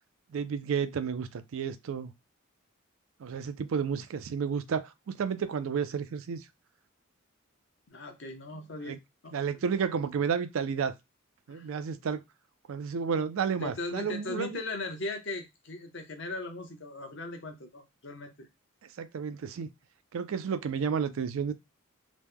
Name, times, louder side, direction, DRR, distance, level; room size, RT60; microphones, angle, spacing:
voice 1, 0.3-2.1 3.2-6.4 8.9-9.0 9.3-10.9 11.5-12.2 12.7-14.6 19.0-19.7 20.1-21.5, right 6 dB, 70° right, 0.4 m, -31 dB
voice 2, 7.9-9.0 9.2-9.6 11.5-11.7 13.6-18.5, left 2 dB, 55° left, 0.7 m, -38 dB
3.0 x 2.1 x 3.5 m
head